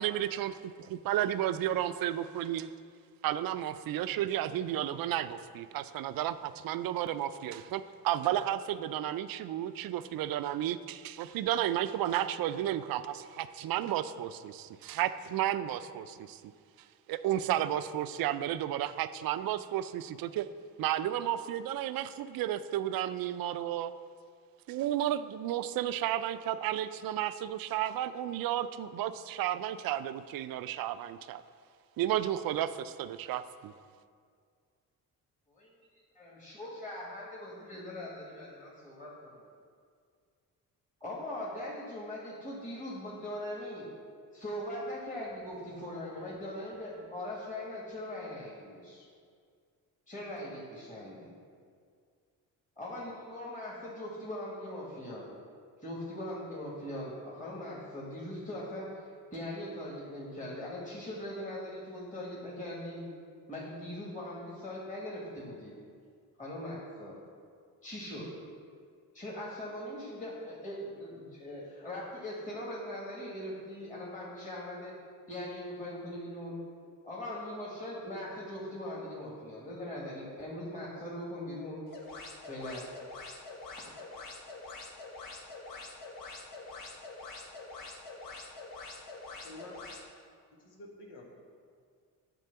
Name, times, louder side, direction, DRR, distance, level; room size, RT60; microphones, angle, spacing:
voice 1, 0.0-2.7 3.2-16.4 17.1-20.5 20.8-23.9 24.7-31.4 32.0-33.7, right 12 dB, 65° right, 13 dB, 0.5 m, -32 dB
voice 2, 35.5-39.5 41.0-43.9 44.3-49.1 50.1-51.3 52.8-55.3 55.8-63.0 63.5-65.7 66.4-67.1 67.8-68.3 69.1-75.0 75.3-76.6 77.0-81.8 82.5-82.9 83.7-83.8, left 1 dB, 20° left, -5 dB, 2.0 m, -41 dB
sound 1, 81.9-90.0, left 3 dB, 60° left, 1.3 m, -45 dB
voice 3, 89.4-89.9 90.6-91.4, left 1 dB, 90° left, 0 dB, 1.4 m, -49 dB
8.2 x 3.8 x 6.8 m, 2.1 s
cardioid pair, 75°, 38 cm